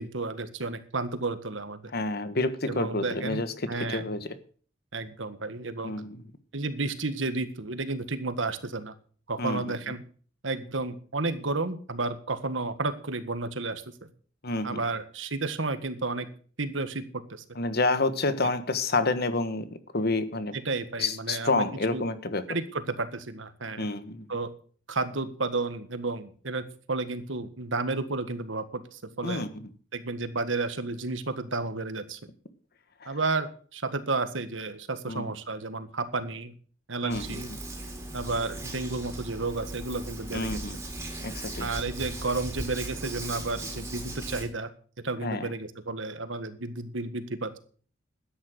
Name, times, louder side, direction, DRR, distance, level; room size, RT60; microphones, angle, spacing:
voice 1, 0.0-1.9 2.7-3.4 3.7-4.2 4.9-5.9 6.5-8.9 9.3-10.0 10.4-13.8 14.6-16.3 16.6-17.4 18.4-18.5 20.5-21.6 21.9-22.0 22.5-23.9 24.3-24.5 24.9-29.4 29.9-32.2 33.0-36.5 36.9-37.5 38.1-40.6 41.6-44.7 45.0-47.6, right 3 dB, 75° right, 11 dB, 1.6 m, -32 dB
voice 2, 1.9-4.3 5.8-6.2 9.4-9.8 14.4-14.8 17.5-20.5 21.0-22.4 23.8-24.3 29.2-29.7 33.0-33.2 35.1-35.2 37.0-37.2 40.3-40.8 41.2-41.7 45.2-45.5, left 2 dB, 55° left, 12 dB, 1.4 m, -29 dB
Hands, 37.1-44.4, right 1 dB, 15° right, 3.5 m, -38 dB
13.0 x 10.0 x 6.5 m, 0.43 s
head